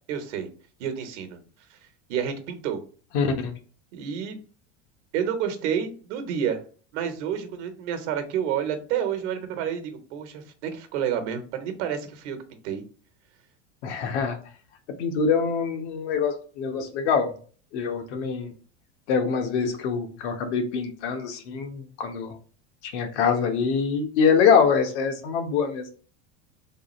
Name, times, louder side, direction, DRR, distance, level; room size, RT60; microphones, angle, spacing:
voice 1, 0.1-0.5 0.8-1.4 1.7-1.8 2.1-2.8 3.9-4.4 5.1-6.6 6.9-12.4 12.6-12.8, right 8 dB, 75° right, 7 dB, 1.0 m, -29 dB
voice 2, 3.1-3.5 13.8-14.4 15.0-17.3 17.7-18.5 19.1-22.3 22.9-25.9, left 6 dB, 75° left, 5 dB, 1.1 m, -24 dB
3.6 x 2.3 x 4.2 m, 0.40 s
supercardioid pair, 145°, 35 cm